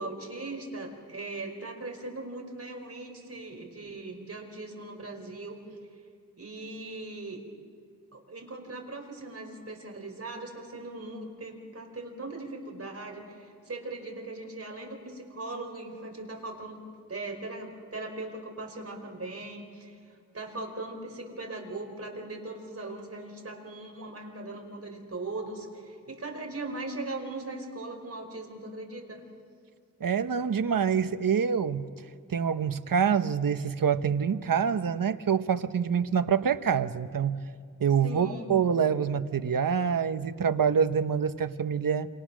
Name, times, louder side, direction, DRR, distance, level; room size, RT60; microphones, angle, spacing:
voice 1, 0.0-5.6 6.4-7.4 8.1-16.8 17.1-20.0 20.3-29.2 38.0-38.5, right 2 dB, 45° right, 2 dB, 4.8 m, -39 dB
voice 2, 30.0-31.9 32.3-37.4 37.8-42.1, right 7 dB, 80° right, 11 dB, 1.0 m, -26 dB
28.5 x 28.0 x 6.3 m, 2.2 s
wide cardioid pair, 115°, 33 cm